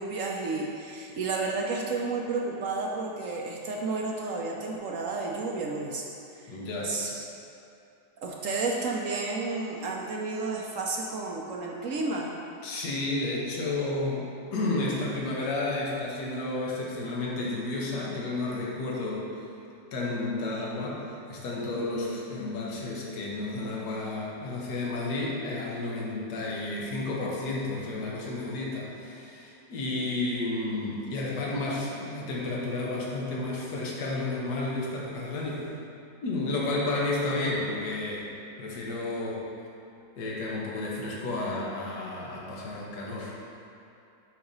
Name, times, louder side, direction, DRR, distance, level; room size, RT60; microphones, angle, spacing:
voice 1, 0.0-6.0 6.3-6.6 6.8-7.3 8.2-12.3, right 3 dB, 70° right, -1 dB, 0.7 m, -31 dB
voice 2, 6.5-6.9 12.6-19.3 19.9-21.0 21.3-35.7 36.2-38.3 38.6-39.4 40.2-43.3, left 2 dB, 65° left, -4 dB, 1.6 m, -31 dB
8.6 x 2.9 x 5.3 m, 2.7 s
omnidirectional pair, 2.0 m